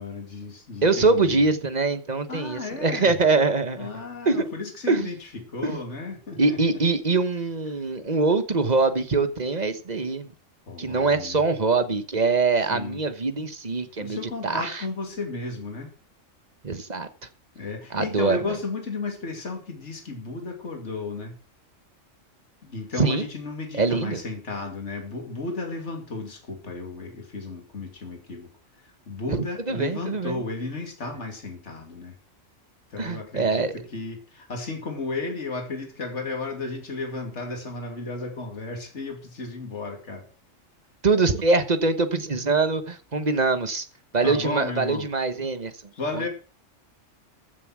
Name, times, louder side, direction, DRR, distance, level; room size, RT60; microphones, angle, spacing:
voice 1, 0.0-1.4 2.3-3.2 3.8-5.2 5.5-6.8 10.7-11.4 12.7-13.0 14.0-15.9 17.5-21.4 22.6-28.5 28.8-32.1 32.9-40.2 44.2-45.1 45.9-46.3, left 3 dB, 60° left, 2.9 m, -34 dB
voice 2, 0.8-3.9 4.2-4.5 4.9-5.1 5.6-5.7 6.4-10.3 10.8-14.9 16.6-17.1 17.9-18.5 23.0-23.3 23.7-24.2 29.3-30.4 33.0-33.7 41.0-43.9 44.1-46.3, right 3 dB, 35° right, 1.3 m, -23 dB
14.5 x 7.2 x 6.2 m
omnidirectional pair, 1.3 m